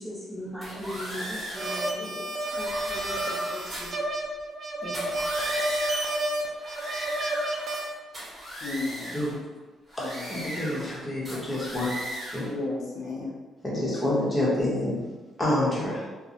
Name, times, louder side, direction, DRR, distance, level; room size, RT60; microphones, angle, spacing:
voice 1, 0.0-4.0 4.8-5.2, equal, 5° right, -7 dB, 0.8 m, -39 dB
sound 1, 0.6-1.8 2.4-4.0 4.8-6.2 6.5-7.8 8.1-9.4 9.9-11.0 11.2-12.5, equal, 30° right, 1.3 m, -37 dB
sound 2, 1.5-7.9, right 1 dB, 50° right, 0.4 m, -30 dB
voice 2, 8.6-9.4 10.0-10.5 11.4-11.6 12.4-13.4, left 3 dB, 70° left, -3 dB, 0.5 m, -34 dB
voice 3, 10.1-11.9 12.3-12.4 13.6-15.0 15.4-16.0, left 1 dB, 20° left, -6 dB, 0.9 m, -27 dB
2.3 x 2.0 x 2.8 m, 1.2 s
cardioid pair, 90°, 0 cm